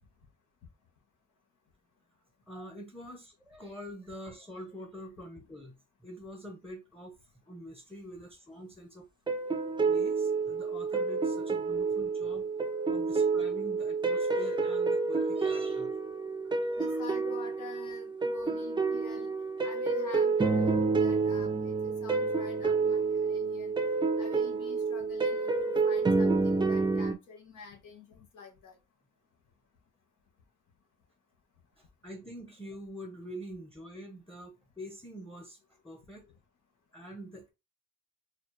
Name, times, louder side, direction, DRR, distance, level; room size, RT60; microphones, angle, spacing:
voice 1, 2.5-5.8 6.0-7.2 7.5-9.1 9.9-12.5 12.8-15.9 16.4-17.0 31.8-36.3 36.9-37.5, equal, 5° left, 0.8 m, -45 dB
sound 1, 9.3-27.2, right 4 dB, 15° right, 0.5 m, -29 dB
voice 2, 16.8-19.3 19.6-20.7 21.0-23.7 24.2-28.8, left 3 dB, 80° left, 1.4 m, -48 dB
4.0 x 2.8 x 3.2 m
cardioid pair, 90°, 30 cm